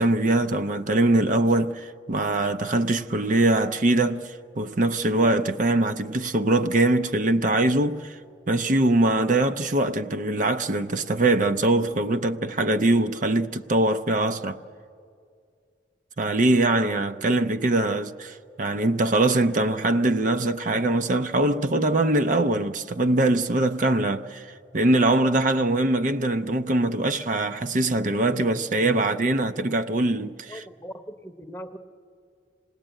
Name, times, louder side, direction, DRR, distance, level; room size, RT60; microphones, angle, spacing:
voice 1, 0.0-8.2 8.5-14.6 16.2-30.6, right 2 dB, 45° right, 0.6 m, -22 dB
voice 2, 30.5-31.8, equal, 15° left, 0.8 m, -40 dB
27.0 x 19.0 x 9.0 m
head